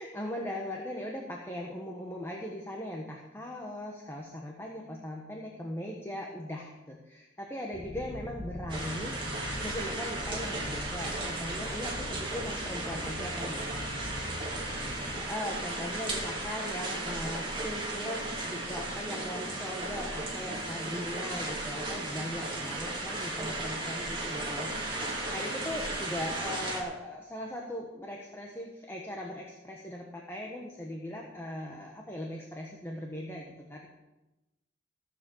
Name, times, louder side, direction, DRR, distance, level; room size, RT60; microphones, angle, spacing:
voice 1, 0.0-9.1 9.6-13.7 15.1-24.7 25.3-33.9, left 1 dB, 15° left, -1 dB, 1.3 m, -39 dB
sound 1, 7.7-15.3, left 2 dB, 40° left, 0.8 m, -43 dB
sound 2, 8.7-26.8, right 2 dB, 25° right, 2.4 m, -35 dB
15.0 x 7.3 x 7.2 m, 1.0 s
head